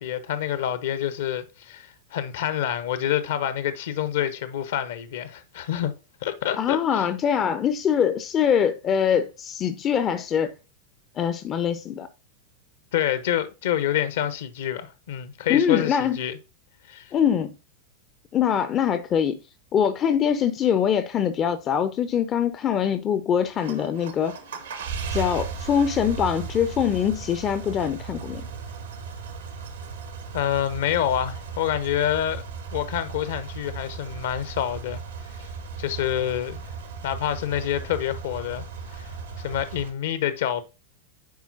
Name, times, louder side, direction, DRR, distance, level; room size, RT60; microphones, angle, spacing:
voice 1, 0.0-5.9 6.2-7.1 12.9-16.4 16.9-17.1 30.3-32.4 32.7-35.0 35.8-36.6 37.0-38.6 38.9-39.1 39.4-40.6, left 10 dB, 55° left, 0.8 m, -27 dB
voice 2, 6.6-10.5 11.2-12.1 15.5-16.2 17.1-17.5 18.3-19.4 19.7-24.4 25.1-28.5, left 8 dB, 30° left, 0.6 m, -23 dB
sound 1, 23.4-39.9, right 5 dB, 65° right, 1.2 m, -36 dB
9.5 x 4.3 x 2.6 m
figure-of-eight pair, 90°, 0 cm